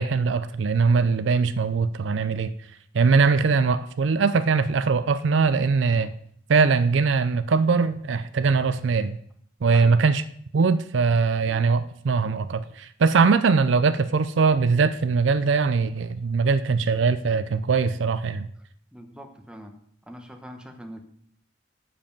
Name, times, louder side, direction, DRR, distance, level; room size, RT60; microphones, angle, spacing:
voice 1, 0.0-2.5 2.9-6.1 6.5-9.2 9.6-10.2 10.5-18.5, right 4 dB, 70° right, 12 dB, 0.4 m, -21 dB
voice 2, 18.9-19.7 20.1-21.0, equal, 5° right, 4 dB, 1.0 m, -42 dB
7.7 x 7.0 x 5.3 m, 0.64 s
head